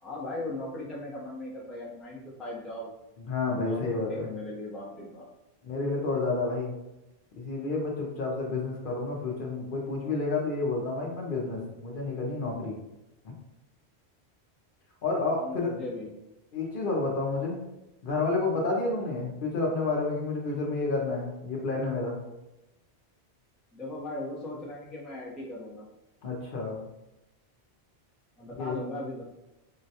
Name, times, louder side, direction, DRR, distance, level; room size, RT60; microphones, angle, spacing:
voice 1, 0.0-2.9 3.6-5.3 15.4-16.1 23.7-25.9 28.4-29.3, left 2 dB, ahead, -5 dB, 0.6 m, -38 dB
voice 2, 3.3-4.3 5.6-6.7 7.3-12.8 15.0-15.7 16.5-17.6 18.0-22.2 26.2-26.8 28.6-28.8, left 3 dB, 60° left, -2 dB, 0.8 m, -30 dB
3.8 x 2.2 x 2.7 m, 0.96 s
omnidirectional pair, 1.1 m